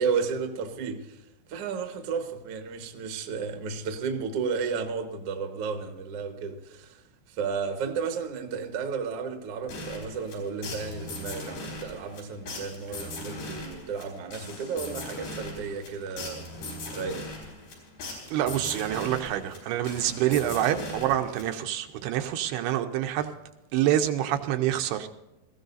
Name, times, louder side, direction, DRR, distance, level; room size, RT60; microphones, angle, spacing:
voice 1, 0.0-16.4 16.9-17.3, right 5 dB, 65° right, 1.5 m, -33 dB
sound 1, 9.7-21.8, left 2 dB, 70° left, 6.0 m, -39 dB
voice 2, 18.3-23.4 23.7-25.1, right 12 dB, 80° right, 2.7 m, -27 dB
20.0 x 15.5 x 2.7 m
omnidirectional pair, 4.8 m